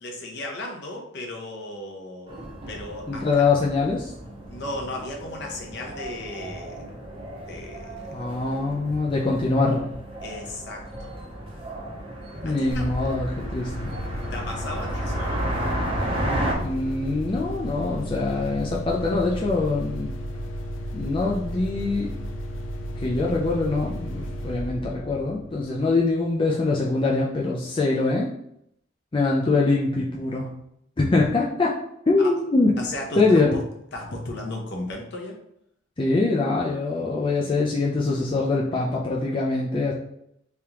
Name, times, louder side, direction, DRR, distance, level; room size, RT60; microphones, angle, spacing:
voice 1, 0.0-3.4 4.4-6.8 7.4-8.1 10.2-11.1 12.4-12.9 14.3-15.5 32.2-32.3 32.8-33.6 33.9-35.4, left 1 dB, 55° left, 0 dB, 0.8 m, -35 dB
sound 1, 2.3-16.5, right 1 dB, 25° right, 0.7 m, -33 dB
voice 2, 3.1-4.1 8.1-9.9 12.4-13.7 16.6-20.1 20.9-22.1 23.0-28.3 29.1-30.5 31.0-31.8 32.1-32.7 33.2-33.5 36.0-39.9, left 3 dB, 25° left, -3 dB, 0.4 m, -23 dB
sound 2, 12.7-26.2, equal, 80° left, 0.5 m, -34 dB
3.5 x 3.4 x 2.9 m, 0.75 s
head